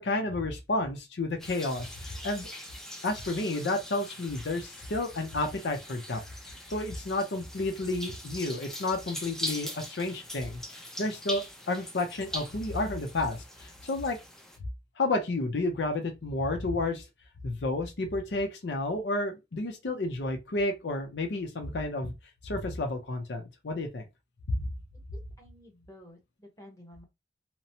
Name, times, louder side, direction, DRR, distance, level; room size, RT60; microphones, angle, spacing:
voice 1, 0.0-2.5 3.0-6.2 6.7-14.2 15.0-17.0 17.4-22.1 22.4-24.0, left 2 dB, 75° left, 0.6 m, -31 dB
sound 1, 1.4-14.6, equal, 5° left, 0.4 m, -42 dB
voice 2, 25.4-27.0, left 1 dB, 20° left, 1.0 m, -52 dB
2.9 x 2.0 x 2.7 m
head